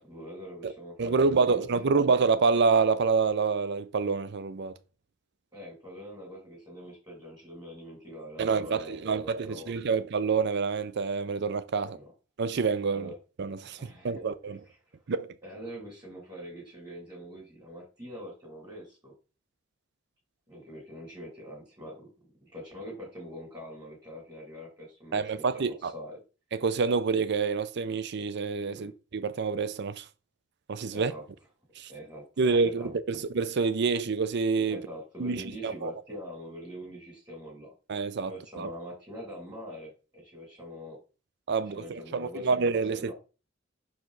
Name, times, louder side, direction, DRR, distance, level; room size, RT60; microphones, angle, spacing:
voice 1, 0.0-2.1 5.5-9.8 11.8-12.1 12.9-13.1 13.8-14.3 14.6-15.0 15.4-19.1 20.5-22.1 22.4-26.2 28.7-28.9 30.9-31.2 31.9-32.9 34.7-37.7 38.2-41.0 41.6-43.1, equal, 20° right, 2.7 m, -44 dB
voice 2, 1.0-4.8 8.4-12.0 12.4-13.1 13.4-13.8 14.0-14.6 15.1-15.3 25.1-25.9 26.5-30.0 30.7-31.1 31.8-31.9 32.4-34.8 35.2-35.9 37.9-38.3 38.6-38.7 41.5-43.1, right 4 dB, 60° right, 0.5 m, -27 dB
5.9 x 4.8 x 3.9 m
head